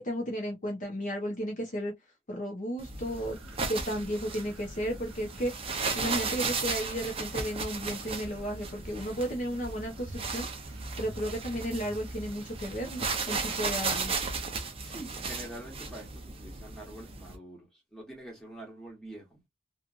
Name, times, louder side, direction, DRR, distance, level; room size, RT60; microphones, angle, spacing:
voice 1, 0.0-1.9 2.3-3.4 3.7-5.5 5.9-10.5 11.0-14.1, equal, 35° left, 0.8 m, -34 dB
sound 1, 2.8-17.3, right 4 dB, 25° right, 0.6 m, -35 dB
sound 2, 3.0-13.2, right 1 dB, 70° right, 1.0 m, -50 dB
voice 2, 14.8-19.4, right 1 dB, 5° left, 1.3 m, -46 dB
2.9 x 2.4 x 2.4 m
head